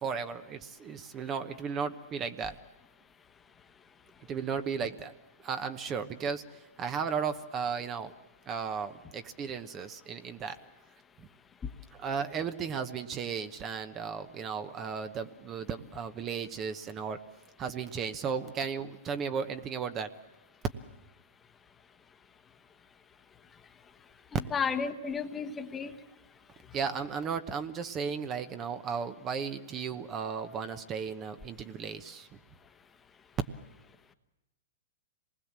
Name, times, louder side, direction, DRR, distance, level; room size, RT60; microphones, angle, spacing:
voice 1, 0.0-2.6 4.3-5.1 5.4-6.4 6.8-8.1 8.5-10.6 12.0-17.2 17.6-20.1 26.7-32.3, right 6 dB, 25° right, 10 dB, 1.0 m, -35 dB
voice 2, 24.5-25.9, left 6 dB, 15° left, 8 dB, 1.2 m, -32 dB
26.0 x 20.0 x 7.5 m, 0.96 s
hypercardioid pair, 135°, 0 cm